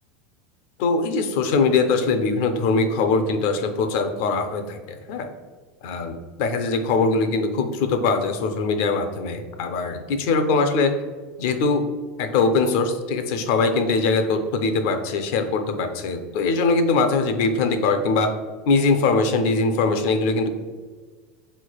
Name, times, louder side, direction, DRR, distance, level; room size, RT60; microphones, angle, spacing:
voice 1, 0.8-5.3 5.8-10.9 11.4-11.8 12.2-18.3 18.6-20.5, left 4 dB, 55° left, 7 dB, 0.4 m, -22 dB
4.2 x 3.1 x 2.3 m, 1.5 s
supercardioid pair, 165°, 0 cm